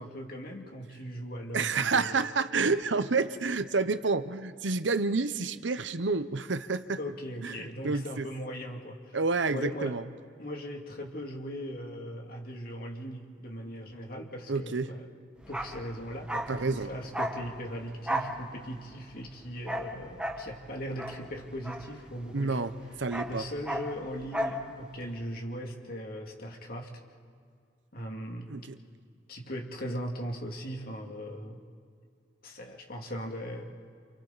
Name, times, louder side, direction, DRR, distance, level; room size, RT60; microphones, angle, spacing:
voice 1, 0.0-2.3 7.0-9.2 9.5-10.0 10.4-15.1 15.5-22.9 23.3-27.0 27.9-28.5 29.3-31.6 32.4-33.8, equal, 55° left, 1 dB, 2.6 m, -39 dB
voice 2, 1.5-7.0 7.4-8.3 9.1-10.0 14.5-14.9 16.5-16.9 22.3-22.7 23.0-23.5 28.5-28.7, right 4 dB, 85° right, 12 dB, 0.9 m, -29 dB
Bark, 15.4-22.5 22.7-24.7 24.9-25.1, equal, 5° right, 1.4 m, -35 dB
29.0 x 28.5 x 4.1 m, 2.2 s
head